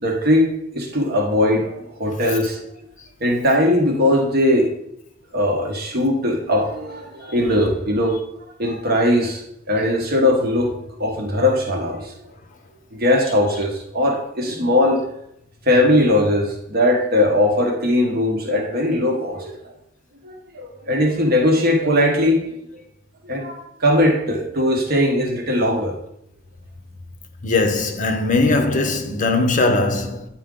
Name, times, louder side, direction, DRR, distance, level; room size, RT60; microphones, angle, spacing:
voice 1, 0.0-2.6 3.2-4.7 5.3-8.2 8.6-9.4 9.7-10.7 11.0-12.1 12.9-15.0 15.7-19.7 20.2-22.4 23.2-26.0, left 1 dB, 50° right, 1.1 m, -19 dB
voice 2, 27.4-30.3, left 3 dB, 40° left, 0.8 m, -19 dB
9.0 x 4.5 x 3.7 m
head